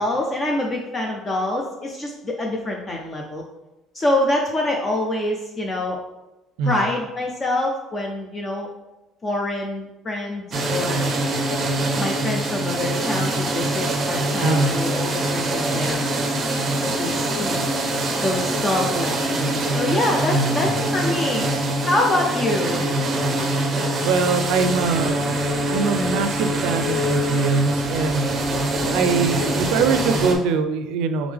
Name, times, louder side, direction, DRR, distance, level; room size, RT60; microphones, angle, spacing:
voice 1, 0.0-3.4 3.9-6.0 6.6-8.7 9.2-11.1 12.0-16.4 16.8-17.6 18.2-21.5 21.9-22.9 28.7-29.1, left 1 dB, 20° left, 1 dB, 0.4 m, -25 dB
sound 1, 10.5-30.3, right 1 dB, 30° right, 0.5 m, -24 dB
voice 2, 14.4-14.8 20.3-20.7 24.0-25.3 25.6-28.2 28.9-31.3, right 4 dB, 85° right, 9 dB, 0.4 m, -22 dB
3.5 x 3.5 x 3.4 m, 1.0 s
cardioid pair, 165°, 0 cm